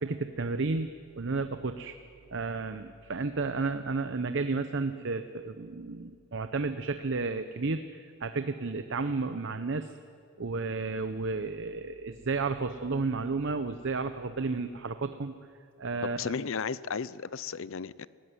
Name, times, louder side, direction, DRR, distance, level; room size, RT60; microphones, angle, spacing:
voice 1, 0.0-0.9 1.2-2.0 2.3-9.9 10.4-15.3 15.8-16.3, right 3 dB, 55° right, 0.8 m, -32 dB
voice 2, 16.0-18.1, left 5 dB, 60° left, 0.6 m, -34 dB
20.0 x 17.0 x 9.7 m
head